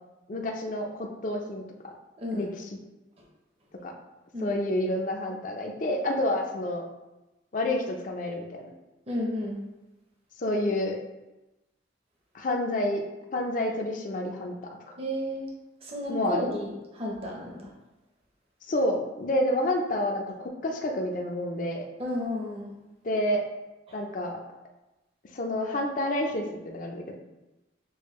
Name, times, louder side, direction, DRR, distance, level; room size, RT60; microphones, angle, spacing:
voice 1, 0.3-1.9 2.3-2.7 3.8-3.9 4.4-6.8 7.5-8.7 10.4-11.0 12.3-13.0 13.3-14.6 16.1-16.5 18.7-21.8 23.0-23.4 23.9-24.4 25.3-27.2, left 1 dB, 45° left, 1 dB, 0.5 m, -29 dB
voice 2, 2.2-2.5 4.3-4.6 9.1-9.6 15.0-15.5 15.8-17.7 22.0-22.7 23.9-24.0, left 1 dB, 30° right, -2 dB, 0.7 m, -32 dB
6.1 x 2.1 x 3.1 m, 1.0 s
head